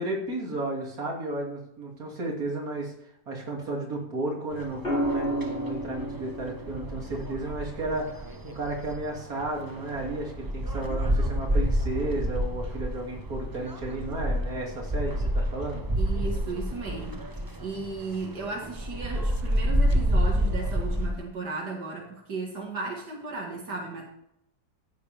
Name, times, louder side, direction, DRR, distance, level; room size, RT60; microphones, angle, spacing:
voice 1, 0.0-2.9 3.3-15.8, right 2 dB, 60° right, -1 dB, 3.2 m, -33 dB
sound 1, 4.5-21.2, equal, 15° right, 0.7 m, -29 dB
sound 2, 4.8-9.0 10.7-11.1, equal, 35° left, 3.5 m, -33 dB
voice 2, 16.0-24.1, right 3 dB, 90° right, -1 dB, 2.5 m, -35 dB
14.5 x 10.0 x 3.5 m, 0.76 s
omnidirectional pair, 1.7 m